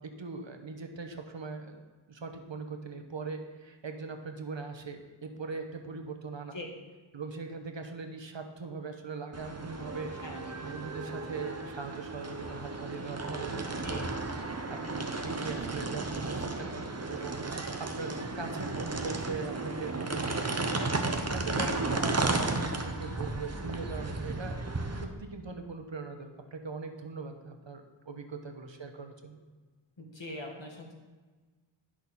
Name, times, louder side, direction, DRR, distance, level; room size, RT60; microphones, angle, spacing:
voice 1, 0.0-1.8 2.1-6.6 7.1-10.1 10.6-14.1 14.7-17.4 17.8-24.6 24.9-29.4, right 4 dB, 65° right, 6 dB, 1.0 m, -41 dB
sound 1, 9.3-25.0, right 3 dB, 30° right, 0.9 m, -34 dB
voice 2, 30.0-30.9, left 2 dB, 65° left, 1 dB, 1.6 m, -42 dB
11.0 x 6.2 x 4.1 m, 1.3 s
wide cardioid pair, 40°, 48 cm